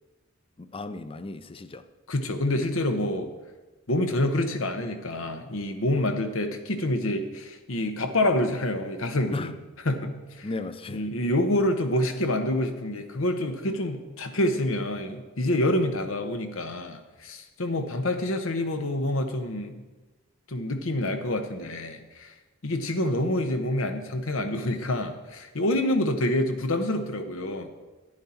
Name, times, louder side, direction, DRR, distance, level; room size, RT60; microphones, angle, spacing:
voice 1, 0.6-1.8 9.3-9.5 10.4-11.1, left 3 dB, 25° left, 0.5 m, -36 dB
voice 2, 2.1-3.3 3.9-9.5 9.8-10.1 10.4-10.5 10.9-19.8 20.5-22.3 22.6-27.7, left 1 dB, 85° left, 1.1 m, -27 dB
11.0 x 10.0 x 4.3 m
head